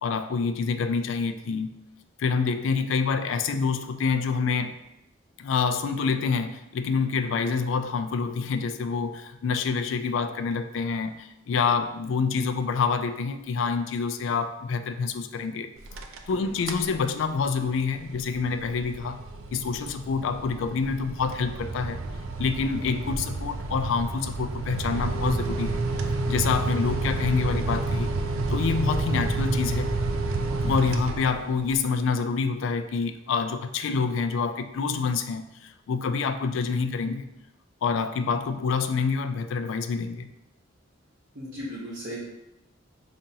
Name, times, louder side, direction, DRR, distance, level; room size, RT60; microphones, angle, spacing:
voice 1, 0.0-1.7 2.2-4.7 5.4-15.7 16.3-19.2 19.5-22.0 22.4-25.8 26.3-28.2 28.5-29.9 30.6-37.3 37.8-40.3, left 5 dB, 65° left, 9 dB, 0.3 m, -27 dB
sound 1, 15.8-16.3 16.6-17.0 17.4-31.7, right 2 dB, 75° right, 0.4 m, -30 dB
voice 2, 16.3-16.6 41.3-42.2, equal, 55° right, -8 dB, 0.8 m, -37 dB
5.4 x 2.5 x 2.7 m, 0.90 s
head